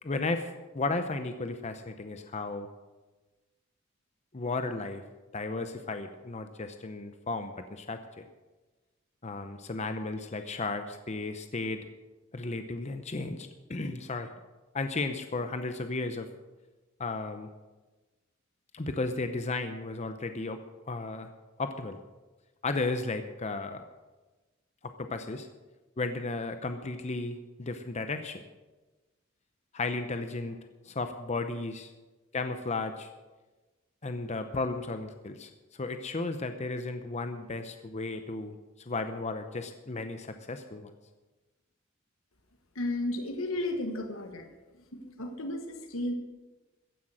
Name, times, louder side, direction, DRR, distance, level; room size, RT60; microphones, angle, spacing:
voice 1, 0.0-2.7 4.3-5.0 5.3-8.2 9.2-11.8 12.3-14.3 14.7-16.3 17.0-17.5 18.7-20.6 20.9-21.3 21.6-22.0 22.6-23.8 24.8-25.5 26.0-28.4 29.7-30.6 30.8-31.9 32.3-33.1 34.0-40.9, left 3 dB, 35° left, 8 dB, 0.7 m, -34 dB
voice 2, 42.7-44.5 44.7-46.1, left 1 dB, 80° left, 5 dB, 1.4 m, -34 dB
15.0 x 10.0 x 6.4 m, 1.2 s
head